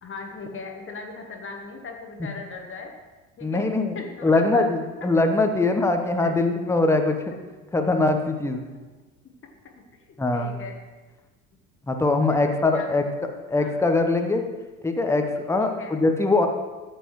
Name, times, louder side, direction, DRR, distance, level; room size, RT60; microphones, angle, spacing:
voice 1, 0.0-2.9 3.4-3.6 3.9-4.7 5.2-5.3 6.2-6.6 8.4-8.6 9.4-9.5 10.3-10.7 12.3-13.1 13.6-13.8 15.6-16.0, left 4 dB, 30° left, 2 dB, 1.3 m, -38 dB
voice 2, 3.4-7.2 7.7-8.6 10.2-10.5 11.9-13.0 13.5-14.4 14.8-16.5, left 2 dB, 5° left, 5 dB, 1.0 m, -22 dB
14.0 x 8.1 x 3.2 m, 1.2 s
figure-of-eight pair, 70°, 43 cm